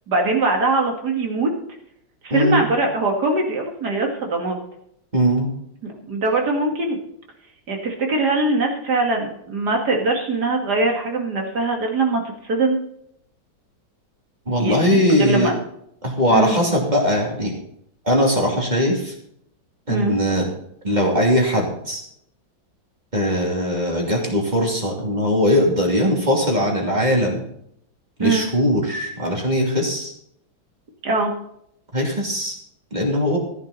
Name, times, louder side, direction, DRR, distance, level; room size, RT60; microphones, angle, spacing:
voice 1, 0.1-1.5 2.2-4.6 5.8-7.0 7.7-12.8 14.6-15.6 16.3-16.6 19.9-20.1 28.2-28.5 31.0-31.3, right 2 dB, 55° right, 2 dB, 2.6 m, -22 dB
voice 2, 2.3-2.6 5.1-5.5 14.5-15.5 16.0-17.5 18.0-19.1 19.9-20.5 20.8-22.0 23.1-27.4 28.2-30.1 31.9-32.5 32.9-33.4, equal, 20° right, 0 dB, 2.9 m, -20 dB
14.5 x 10.5 x 4.1 m, 0.72 s
omnidirectional pair, 2.1 m